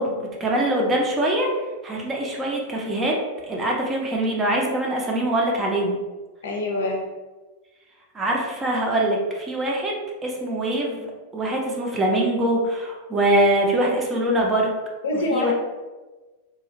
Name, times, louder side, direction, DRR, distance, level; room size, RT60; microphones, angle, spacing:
voice 1, 0.0-1.5 1.8-3.2 3.5-6.0 8.1-11.1 11.3-14.7 15.3-15.5, right 1 dB, 20° right, -1 dB, 0.6 m, -23 dB
voice 2, 6.4-7.1 15.0-15.5, left 1 dB, 65° left, 1 dB, 0.5 m, -25 dB
2.9 x 2.4 x 2.8 m, 1.2 s
figure-of-eight pair, 90°, 0 cm